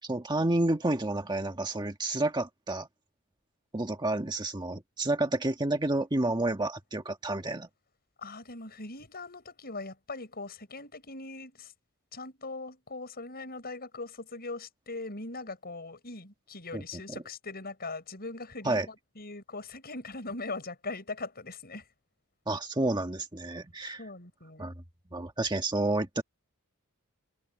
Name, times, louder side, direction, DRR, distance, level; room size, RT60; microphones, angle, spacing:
voice 1, 0.0-2.9 3.7-7.7 16.7-17.2 18.6-18.9 22.5-24.0 24.6-24.7 25.1-26.2, right 2 dB, 20° right, 1.5 m, -30 dB
voice 2, 8.2-11.7 12.1-21.8 24.0-24.7, left 3 dB, 45° left, 6.8 m, -40 dB
head